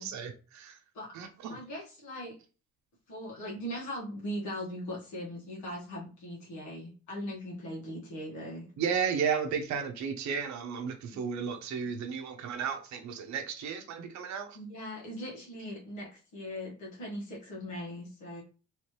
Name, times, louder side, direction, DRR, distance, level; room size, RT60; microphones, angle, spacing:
voice 1, 0.0-0.8 1.1-1.6 8.8-14.6, right 6 dB, 70° right, 5 dB, 0.7 m, -33 dB
voice 2, 1.5-2.3 3.1-8.7 11.1-11.5 14.5-18.4, equal, 85° left, -4 dB, 1.5 m, -40 dB
3.2 x 3.1 x 2.9 m, 0.35 s
cardioid pair, 110°, 29 cm